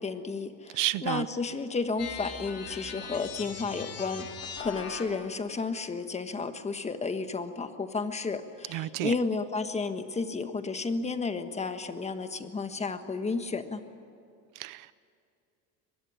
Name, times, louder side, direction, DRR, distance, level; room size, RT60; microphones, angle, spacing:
voice 1, 0.0-4.3 4.6-13.8, left 4 dB, 15° left, 1.4 m, -32 dB
voice 2, 0.7-1.3 8.7-9.1 14.6-14.9, right 17 dB, 50° right, 0.6 m, -31 dB
sound 1, 2.0-5.3, left 6 dB, 35° left, 3.5 m, -40 dB
23.5 x 21.0 x 9.8 m
cardioid pair, 140°, 43 cm